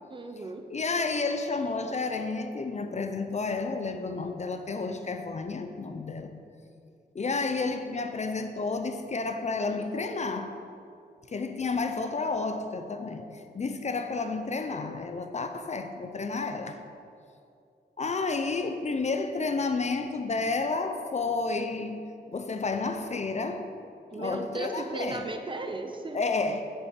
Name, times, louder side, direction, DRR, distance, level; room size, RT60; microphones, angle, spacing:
voice 1, 0.1-0.7 24.1-26.2, right 3 dB, 30° right, 5 dB, 0.8 m, -36 dB
voice 2, 0.7-6.3 7.1-10.5 11.3-16.8 18.0-23.7 24.1-25.3 26.1-26.6, left 3 dB, 40° left, 7 dB, 0.6 m, -31 dB
7.6 x 7.0 x 8.3 m, 2.4 s
wide cardioid pair, 175°, 18 cm